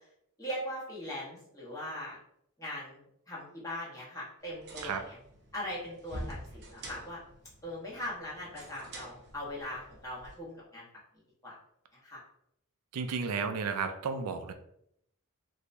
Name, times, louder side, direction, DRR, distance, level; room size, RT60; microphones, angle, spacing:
voice 1, 0.4-2.1 2.6-5.1 5.5-7.2 7.6-10.8 11.4-11.5 12.0-12.2, left 1 dB, 15° left, -7 dB, 1.3 m, -40 dB
sound 1, 4.4-10.4, right 1 dB, 50° right, 0.8 m, -47 dB
voice 2, 12.9-14.5, right 5 dB, 85° right, 8 dB, 0.4 m, -33 dB
3.0 x 2.6 x 3.3 m, 0.74 s
head